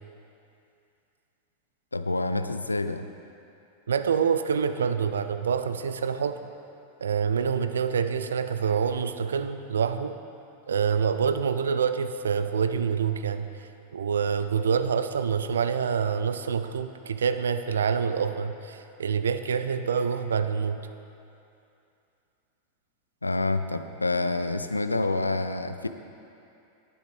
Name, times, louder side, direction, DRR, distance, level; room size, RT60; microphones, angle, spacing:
voice 1, 1.9-3.1 23.2-25.9, left 2 dB, 80° left, 10 dB, 0.4 m, -27 dB
voice 2, 3.9-6.5 7.0-10.2 10.7-13.5 13.9-20.8, right 6 dB, 65° right, 10 dB, 0.4 m, -26 dB
11.5 x 10.0 x 3.5 m, 2.7 s
figure-of-eight pair, 90°, 0 cm